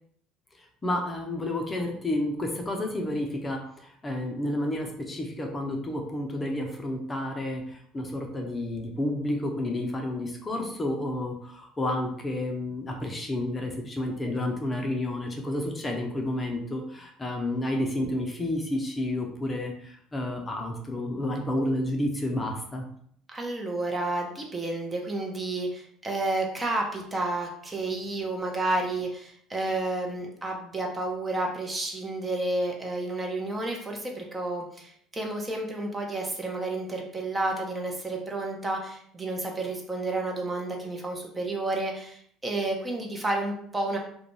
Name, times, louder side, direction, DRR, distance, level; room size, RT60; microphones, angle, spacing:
voice 1, 0.8-22.8, left 1 dB, 20° left, 2 dB, 0.6 m, -30 dB
voice 2, 23.3-44.0, right 2 dB, 25° right, 1 dB, 0.7 m, -31 dB
2.4 x 2.2 x 3.0 m, 0.64 s
hypercardioid pair, 65°, 0 cm